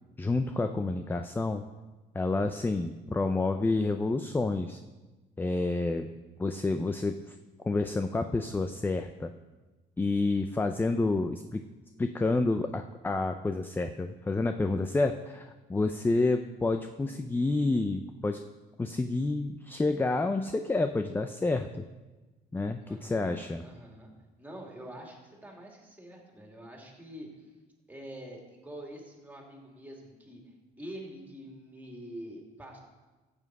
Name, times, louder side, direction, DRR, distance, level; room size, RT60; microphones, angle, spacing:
voice 1, 0.2-1.6 2.1-4.8 5.4-6.1 6.4-7.2 7.6-9.3 10.0-11.6 12.0-15.4 15.7-18.4 18.8-21.8 22.5-23.6, left 3 dB, 10° left, 7 dB, 0.5 m, -29 dB
voice 2, 22.8-24.1 24.4-27.3 27.9-32.8, equal, 10° right, 0 dB, 2.7 m, -46 dB
14.5 x 7.7 x 4.8 m, 1.2 s
cardioid pair, 110°, 17 cm